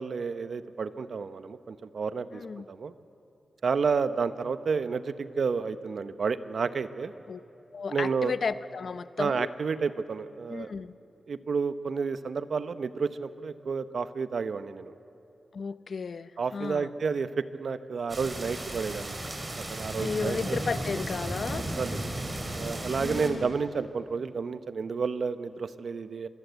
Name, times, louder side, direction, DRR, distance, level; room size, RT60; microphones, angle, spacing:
voice 1, 0.0-2.4 2.7-2.9 3.6-7.1 7.9-8.3 9.2-10.7 11.3-14.9 16.4-19.2 19.6-20.6 21.8-22.1 22.6-26.3, right 5 dB, 65° right, 12 dB, 0.8 m, -31 dB
voice 2, 2.3-2.7 7.3-7.4 7.7-9.5 10.5-10.9 15.5-16.9 20.0-21.7 23.0-23.5, left 5 dB, 60° left, 14 dB, 0.6 m, -34 dB
sound 1, 18.1-23.3, right 1 dB, 25° right, 3.2 m, -34 dB
25.5 x 22.0 x 8.1 m, 2.7 s
wide cardioid pair, 115°, 0 cm